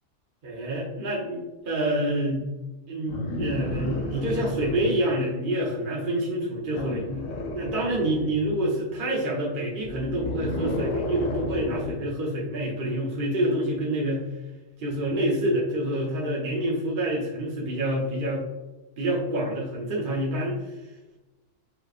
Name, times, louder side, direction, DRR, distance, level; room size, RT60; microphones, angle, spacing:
voice 1, 0.4-2.5 2.9-7.3 7.5-14.2 14.8-18.4 19.0-20.6, right 1 dB, 45° right, -4 dB, 0.8 m, -27 dB
sound 1, 3.1-5.1 6.7-8.5 9.8-12.1 13.4-13.5, left 1 dB, 70° left, 1.1 m, -32 dB
4.9 x 3.0 x 2.4 m, 1.1 s
omnidirectional pair, 1.3 m